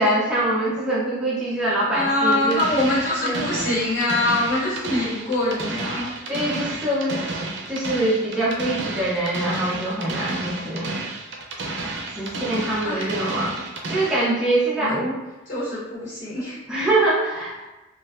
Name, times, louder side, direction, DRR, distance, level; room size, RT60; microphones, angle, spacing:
voice 1, 0.0-2.6 3.2-3.5 6.3-7.3 7.7-11.1 12.2-13.6 13.9-15.1 16.7-17.6, right 1 dB, 5° right, -7 dB, 0.4 m, -24 dB
voice 2, 1.9-6.1 12.3-12.5 12.8-13.2 14.7-15.1 15.5-16.6, left 1 dB, 60° left, -10 dB, 1.1 m, -24 dB
sound 1, 2.3-14.3, right 2 dB, 60° right, 0.5 m, -31 dB
3.0 x 2.5 x 2.3 m, 1.1 s
head